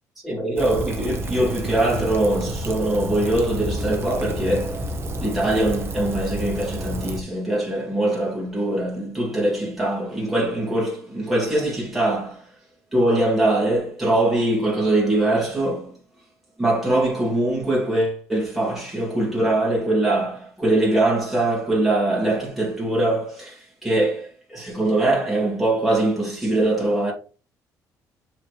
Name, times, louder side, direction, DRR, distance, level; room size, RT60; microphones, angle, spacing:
voice 1, 0.2-4.9 5.2-12.5 12.9-16.0 16.6-27.1, right 1 dB, ahead, 2.5 m, -22 dB
Rain, 0.6-7.2, right 1 dB, 35° right, 1.2 m, -30 dB
7.2 x 4.5 x 3.3 m
cardioid pair, 105°, 7 cm